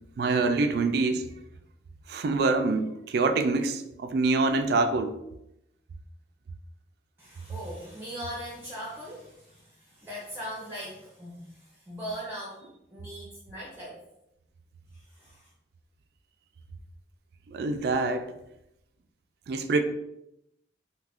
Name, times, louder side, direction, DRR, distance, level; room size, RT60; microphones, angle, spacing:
voice 1, 0.2-1.3 2.1-5.2 17.5-18.3 19.5-19.8, right 3 dB, 60° right, 8 dB, 0.3 m, -25 dB
voice 2, 7.2-14.0 14.9-15.5, equal, 15° right, -5 dB, 0.5 m, -40 dB
2.8 x 2.4 x 3.4 m, 0.84 s
head